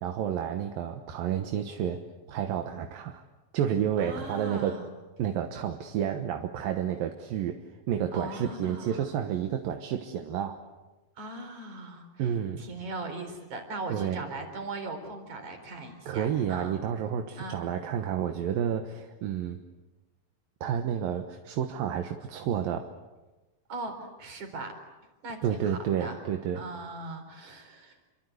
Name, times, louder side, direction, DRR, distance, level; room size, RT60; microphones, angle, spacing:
voice 1, 0.0-2.0 2.3-3.2 3.5-4.8 5.2-7.6 7.9-10.6 12.2-12.6 13.9-14.2 16.1-19.6 20.6-22.9 25.4-26.6, right 9 dB, 75° right, 5 dB, 3.0 m, -30 dB
voice 2, 4.0-4.8 8.1-9.1 11.2-12.2 12.6-16.7 17.4-17.6 23.7-24.7 25.2-26.2 26.5-28.0, right 2 dB, 55° right, 6 dB, 5.3 m, -39 dB
28.0 x 25.0 x 8.1 m, 1.1 s
omnidirectional pair, 4.2 m